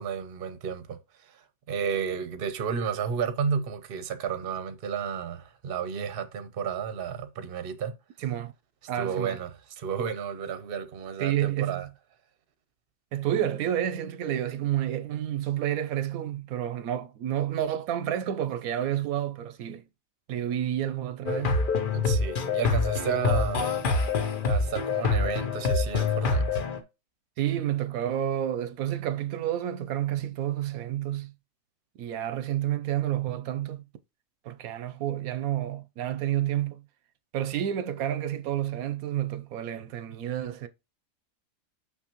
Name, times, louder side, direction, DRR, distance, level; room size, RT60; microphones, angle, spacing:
voice 1, 0.0-7.9 9.0-9.5 9.8-11.9 21.9-23.8 24.4-26.7, right 7 dB, 50° right, 0.9 m, -32 dB
voice 2, 8.2-8.5 8.9-9.4 11.2-11.9 13.1-19.8 20.3-21.7 27.4-31.3 32.0-33.8 34.4-36.8 37.3-40.7, right 11 dB, 85° right, 1.1 m, -30 dB
sound 1, 21.3-26.8, left 4 dB, 45° left, 0.8 m, -26 dB
6.2 x 6.0 x 3.0 m
omnidirectional pair, 1.5 m